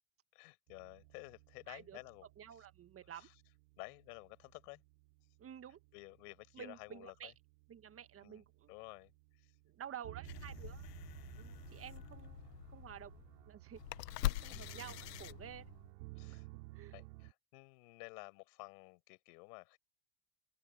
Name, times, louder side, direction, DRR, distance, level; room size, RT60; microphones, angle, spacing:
voice 1, 0.3-2.3 2.6-2.7 3.1-3.3 3.8-4.8 5.9-7.3 8.2-9.5 14.5-14.8 16.2-19.8, left 28 dB, 70° left, 5.9 m, -53 dB
sound 1, 0.7-17.3, right 24 dB, 70° right, 5.1 m, -56 dB
voice 2, 1.7-2.0 2.4-3.3 5.4-5.8 6.5-7.3 7.7-8.7 9.6-10.9 11.4-13.8 14.2-15.7 16.2-16.4 16.7-17.0, right 9 dB, 30° right, 1.7 m, -51 dB
sound 2, 10.2-15.9, left 16 dB, 90° left, 1.3 m, -44 dB
open air
supercardioid pair, 105°, 47 cm